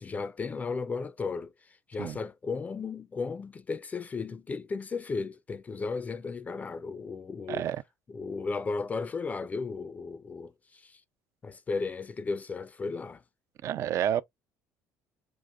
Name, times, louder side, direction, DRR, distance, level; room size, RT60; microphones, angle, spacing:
voice 1, 0.0-7.6 8.1-11.0 11.4-13.2, left 4 dB, 25° left, 0.4 m, -35 dB
voice 2, 7.5-7.8 13.6-14.2, right 10 dB, 50° right, 0.3 m, -29 dB
6.2 x 2.5 x 2.3 m
cardioid pair, 110°, 6 cm